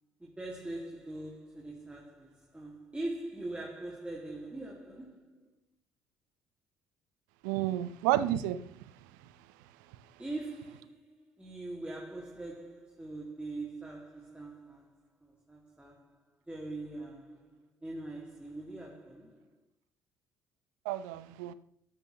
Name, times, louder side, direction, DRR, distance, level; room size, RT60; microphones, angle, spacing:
voice 1, 0.2-5.5 10.2-19.6, right 2 dB, 10° right, 2.4 m, -42 dB
voice 2, 7.4-8.6 20.8-21.5, right 13 dB, 75° right, 0.8 m, -30 dB
13.0 x 10.0 x 3.1 m
hypercardioid pair, 50°, 10 cm